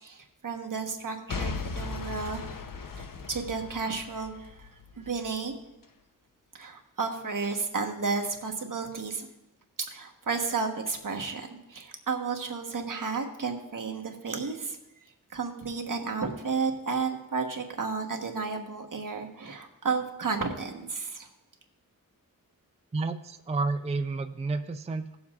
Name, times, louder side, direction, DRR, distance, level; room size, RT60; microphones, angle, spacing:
voice 1, 0.0-2.4 3.0-4.7 5.0-5.5 6.5-9.3 9.9-14.8 15.3-21.3, right 4 dB, 65° right, 2 dB, 1.2 m, -32 dB
Boom / Shatter / Crushing, 1.3-5.3 5.8-5.9, left 4 dB, 70° left, 0.8 m, -37 dB
voice 2, 22.9-25.2, right 3 dB, 20° right, 8 dB, 0.4 m, -30 dB
18.0 x 7.1 x 2.4 m, 0.94 s
wide cardioid pair, 70°, 34 cm